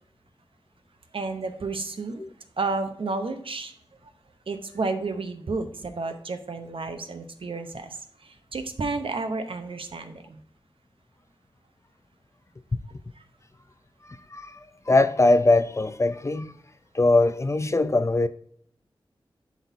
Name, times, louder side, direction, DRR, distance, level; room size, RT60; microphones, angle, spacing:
voice 1, 1.1-2.2 2.6-3.7 4.5-7.9 8.5-10.1, right 3 dB, 70° right, 0.8 m, -31 dB
voice 2, 14.9-16.5 16.9-18.3, left 2 dB, 30° left, 0.4 m, -21 dB
11.5 x 4.2 x 2.7 m
wide cardioid pair, 60°, 9 cm